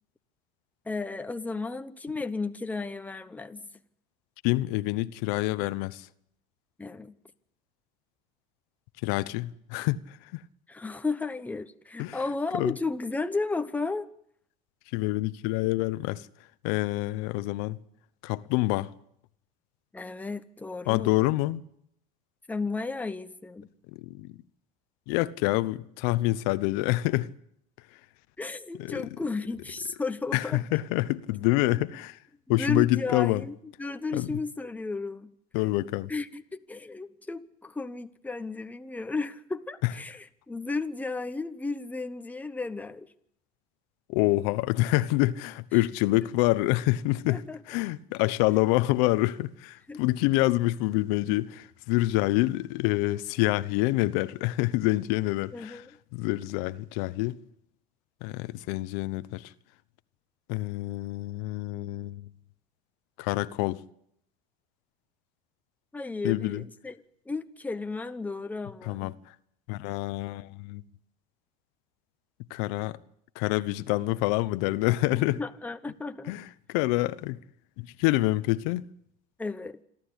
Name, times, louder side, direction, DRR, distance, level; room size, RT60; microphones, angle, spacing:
voice 1, 0.8-3.6 6.8-7.2 10.7-14.1 19.9-21.2 22.5-23.7 28.4-30.6 32.6-35.3 36.1-43.1 45.7-45.8 46.2-46.3 47.3-47.6 49.9-50.0 55.5-55.9 65.9-67.0 67.3-69.1 75.1-76.4 79.4-79.8, left 3 dB, 5° left, 1.0 m, -34 dB
voice 2, 4.4-6.1 9.0-10.4 12.0-12.2 12.5-12.8 14.9-16.3 16.6-17.8 18.2-18.9 20.9-21.6 24.0-24.3 25.1-27.3 28.8-29.1 30.3-32.2 32.5-33.4 34.1-34.3 35.5-36.1 39.8-39.9 44.1-47.4 47.7-55.8 56.1-57.4 58.2-59.5 60.5-62.2 63.2-63.8 66.2-66.6 68.8-69.1 69.7-70.8 72.5-73.0 73.4-75.4 76.3-77.4 77.8-78.8, left 18 dB, 75° left, 1.0 m, -27 dB
27.5 x 12.5 x 10.0 m
supercardioid pair, 125°, 21 cm